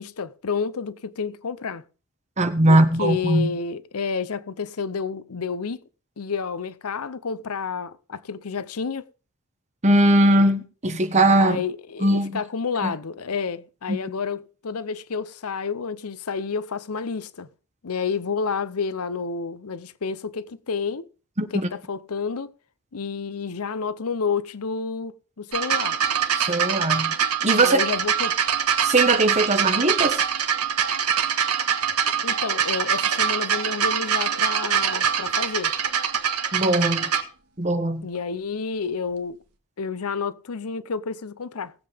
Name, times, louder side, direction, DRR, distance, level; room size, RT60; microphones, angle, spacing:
voice 1, 0.0-1.8 2.7-5.8 6.2-9.0 11.4-17.5 17.8-21.1 21.5-22.5 22.9-26.0 27.6-28.4 32.0-35.7 38.0-39.4 39.8-41.7, left 5 dB, 80° left, 0.7 m, -30 dB
voice 2, 2.4-3.5 9.8-11.6 12.0-12.4 12.8-12.9 13.9-14.0 21.4-21.5 26.4-27.1 27.4-27.8 28.8-30.2 36.5-37.1 37.6-38.1, right 1 dB, 30° right, 1.3 m, -20 dB
sound 1, 25.5-37.2 38.1-38.2, right 8 dB, 90° right, 1.6 m, -24 dB
19.5 x 7.7 x 3.4 m
head